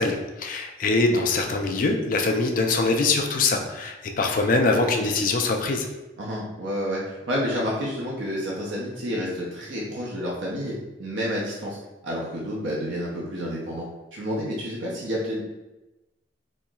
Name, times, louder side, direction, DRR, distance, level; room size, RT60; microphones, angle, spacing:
voice 1, 0.0-5.9, left 3 dB, 45° left, 3 dB, 0.4 m, -23 dB
voice 2, 6.2-10.7 11.0-11.8 12.0-13.9 14.1-15.4, equal, 85° right, -4 dB, 0.7 m, -29 dB
4.1 x 2.9 x 2.3 m, 1.0 s
head